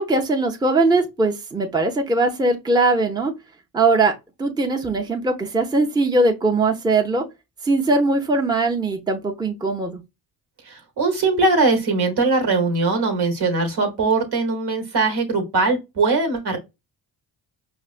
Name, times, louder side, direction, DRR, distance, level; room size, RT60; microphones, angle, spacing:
voice 1, 0.0-3.3 3.7-4.1 4.4-7.2 7.6-10.0, right 2 dB, 10° right, 0.6 m, -20 dB
voice 2, 10.6-16.6, right 3 dB, 65° right, 1.2 m, -21 dB
5.0 x 2.1 x 2.4 m
supercardioid pair, 60°, 43 cm